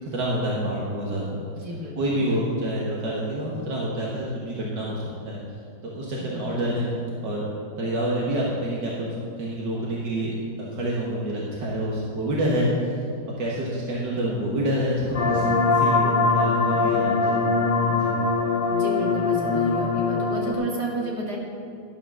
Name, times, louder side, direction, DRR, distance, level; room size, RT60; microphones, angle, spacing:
voice 1, 0.0-1.4 2.0-5.4 5.8-6.9 7.2-7.5 7.8-12.7 13.4-17.4 17.9-18.1, right 1 dB, 80° right, -5 dB, 2.2 m, -27 dB
voice 2, 1.5-2.4 6.2-6.8 12.5-12.9 18.7-21.4, equal, 65° right, -3 dB, 2.7 m, -32 dB
sound 1, 15.1-20.5, left 4 dB, 35° left, 1.0 m, -22 dB
11.5 x 8.7 x 6.3 m, 2.4 s
omnidirectional pair, 1.9 m